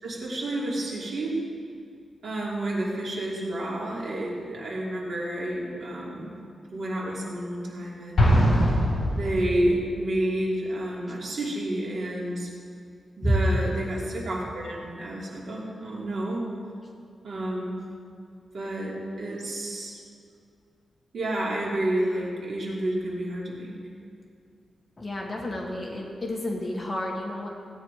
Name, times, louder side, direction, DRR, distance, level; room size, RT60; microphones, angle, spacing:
voice 1, 0.0-1.4 2.2-6.4 6.7-8.4 9.2-12.5 13.2-16.5 17.2-17.8 18.5-20.0 21.1-23.8, right 1 dB, 60° right, -4 dB, 3.0 m, -30 dB
Explosion, 8.2-9.9, equal, 50° left, 3.9 m, -22 dB
voice 2, 13.2-13.6 25.0-27.5, equal, 20° left, -1 dB, 1.7 m, -28 dB
17.0 x 9.2 x 4.9 m, 2.3 s
wide cardioid pair, 160°, 0 cm